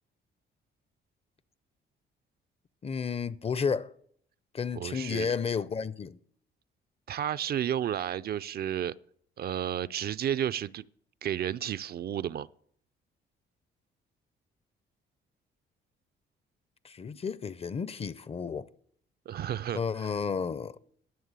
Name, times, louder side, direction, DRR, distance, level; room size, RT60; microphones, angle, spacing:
voice 1, 2.8-3.9 4.5-6.2 16.8-18.7 19.7-20.8, left 6 dB, 30° left, 0.5 m, -32 dB
voice 2, 4.7-5.3 7.1-8.9 9.4-10.9 11.2-12.5 19.3-20.1, right 10 dB, 50° right, 0.4 m, -32 dB
11.0 x 6.6 x 8.1 m
cardioid pair, 90°, 20 cm